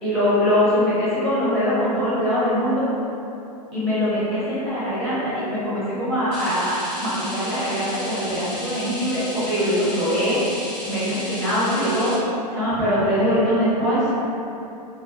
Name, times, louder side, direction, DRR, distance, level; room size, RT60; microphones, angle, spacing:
voice 1, 0.0-2.8 3.7-10.4 10.9-12.1 12.5-14.0, equal, ahead, -11 dB, 0.8 m, -22 dB
sound 1, 6.3-12.2, equal, 85° left, 1.2 m, -34 dB
2.8 x 2.2 x 2.4 m, 2.8 s
hypercardioid pair, 105°, 21 cm